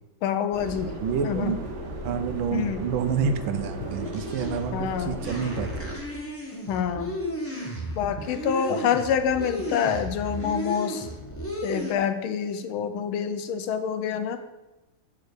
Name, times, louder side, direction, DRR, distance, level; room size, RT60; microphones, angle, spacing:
voice 1, 0.2-0.9 1.2-1.5 2.5-2.8 4.7-5.2 6.7-7.1 8.0-11.1 11.6-14.4, left 8 dB, 80° left, 9 dB, 1.5 m, -27 dB
Subway metro underground, 0.5-6.0, right 1 dB, 45° right, 1.1 m, -36 dB
voice 2, 1.0-1.6 2.0-5.7 8.7-8.8, right 6 dB, 75° right, 9 dB, 1.4 m, -28 dB
sound 1, 3.9-11.9, equal, 15° left, 0.5 m, -34 dB
7.1 x 4.5 x 6.5 m, 1.0 s
omnidirectional pair, 2.3 m